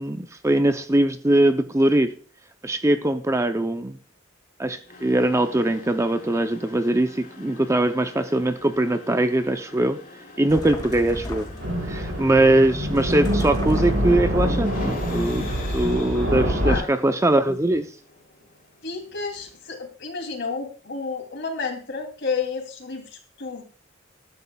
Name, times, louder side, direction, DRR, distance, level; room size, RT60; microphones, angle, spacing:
voice 1, 0.0-2.1 2.6-4.0 4.6-10.0 10.4-11.5 11.9-17.9, right 1 dB, 15° right, 8 dB, 0.5 m, -21 dB
sound 1, 4.8-19.8, left 3 dB, 45° left, 4.1 m, -44 dB
sound 2, 10.5-11.8 13.0-14.2, left 1 dB, 20° left, 2.0 m, -35 dB
sound 3, 11.6-16.8, equal, 65° right, 4.8 m, -25 dB
voice 2, 18.8-23.6, left 4 dB, 60° left, 3 dB, 2.8 m, -31 dB
20.0 x 11.0 x 2.3 m, 0.40 s
head